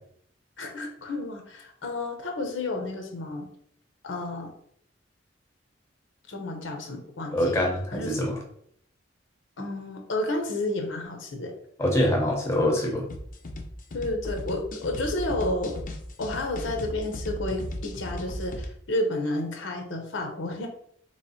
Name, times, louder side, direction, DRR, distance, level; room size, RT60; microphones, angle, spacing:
voice 1, 0.6-3.5 4.0-4.5 6.3-8.3 9.6-11.5 13.9-15.7 16.2-20.7, left 2 dB, 80° left, 2 dB, 0.9 m, -31 dB
voice 2, 7.3-8.4 11.8-13.1, left 1 dB, 15° left, 0 dB, 0.8 m, -24 dB
sound 1, 13.1-18.7, left 1 dB, 45° left, 0.6 m, -36 dB
3.2 x 3.1 x 4.2 m, 0.67 s
head